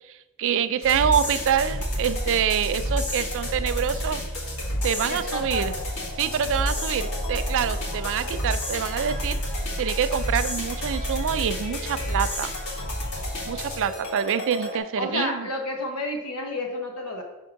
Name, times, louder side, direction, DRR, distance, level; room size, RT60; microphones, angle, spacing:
voice 1, 0.4-4.2 4.8-5.7 6.2-9.4 9.8-12.5 13.5-15.5, right 8 dB, 60° right, 12 dB, 0.4 m, -26 dB
sound 1, 0.8-14.8, equal, 70° left, 1.4 m, -29 dB
voice 2, 5.1-5.7 15.0-17.2, left 2 dB, 85° left, 3 dB, 0.9 m, -30 dB
5.2 x 3.6 x 5.7 m, 1.0 s
head